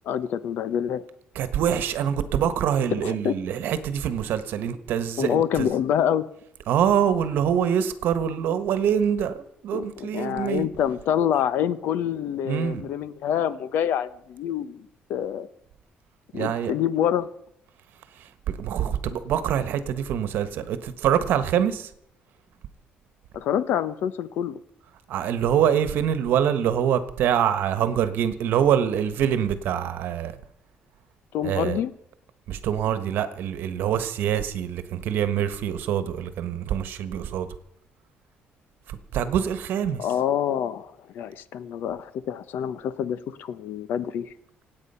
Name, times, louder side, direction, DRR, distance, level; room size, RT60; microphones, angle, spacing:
voice 1, 0.0-1.0 3.0-3.4 5.2-6.3 9.7-15.5 16.3-17.3 23.3-24.6 31.3-31.9 40.0-44.3, left 9 dB, 65° left, 0.9 m, -26 dB
voice 2, 1.3-5.7 6.7-10.7 12.4-12.8 16.3-16.7 18.1-21.9 25.1-30.4 31.4-31.8 32.5-37.5 38.9-40.1, right 9 dB, 65° right, 1.3 m, -25 dB
25.5 x 8.8 x 5.6 m
cardioid pair, 165°, 4 cm